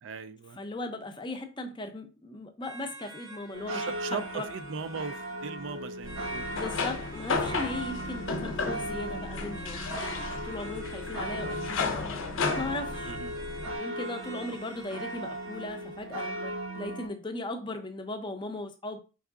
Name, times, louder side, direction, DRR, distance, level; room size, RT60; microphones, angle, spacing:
voice 1, 0.0-0.6 3.7-6.7 13.1-13.3, right 5 dB, 65° right, 0.4 m, -39 dB
voice 2, 0.6-4.5 6.5-10.0 10.3-12.1 12.6-13.1 13.8-19.0, left 2 dB, 20° left, 0.5 m, -38 dB
sound 1, 2.6-16.2, right 2 dB, 15° right, 0.6 m, -49 dB
sound 2, 3.5-17.1, right 1 dB, 80° right, 1.4 m, -38 dB
sound 3, 6.0-13.8, left 4 dB, 70° left, 0.5 m, -34 dB
4.6 x 3.5 x 2.4 m
head